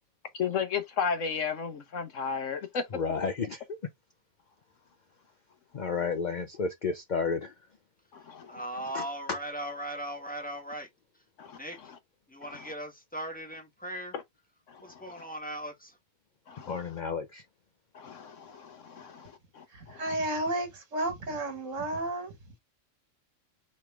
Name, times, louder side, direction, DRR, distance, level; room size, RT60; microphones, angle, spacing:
voice 1, 0.3-2.8 8.1-8.6 11.4-11.9 12.4-12.7 14.1-14.2 14.7-15.2 16.5-16.7 17.9-20.1, left 6 dB, 65° left, 1.2 m, -35 dB
voice 2, 2.9-3.8 5.7-7.5 8.9-9.4 16.7-17.4, left 5 dB, 50° left, 0.6 m, -32 dB
voice 3, 8.5-10.9 11.5-11.8 12.3-14.1 14.8-16.0, equal, 5° left, 1.6 m, -38 dB
voice 4, 19.7-22.3, right 1 dB, 65° right, 1.8 m, -32 dB
4.6 x 3.2 x 3.4 m
omnidirectional pair, 1.4 m